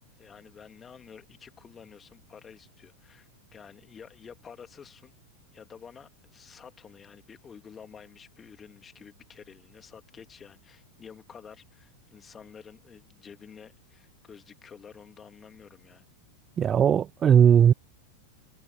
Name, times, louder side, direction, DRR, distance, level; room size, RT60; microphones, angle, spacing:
voice 1, 0.2-5.1 5.5-16.1, left 7 dB, 20° left, 2.7 m, -50 dB
voice 2, 16.6-17.7, right 8 dB, 25° right, 0.4 m, -18 dB
figure-of-eight pair, 90°, 0 cm